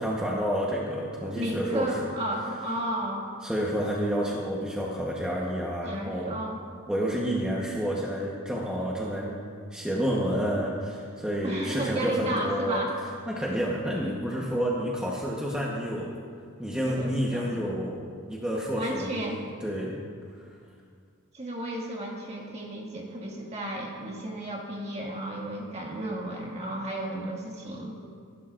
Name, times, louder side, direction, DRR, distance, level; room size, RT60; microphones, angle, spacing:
voice 1, 0.0-1.9 3.4-6.4 6.9-9.4 9.7-12.9 13.3-16.2 16.6-20.0, equal, 5° right, -4 dB, 1.1 m, -29 dB
voice 2, 1.3-3.3 5.8-6.6 11.4-12.9 16.9-17.8 18.7-19.4 21.3-28.0, right 1 dB, 30° right, -2 dB, 2.0 m, -33 dB
26.5 x 12.0 x 2.5 m, 2.2 s
head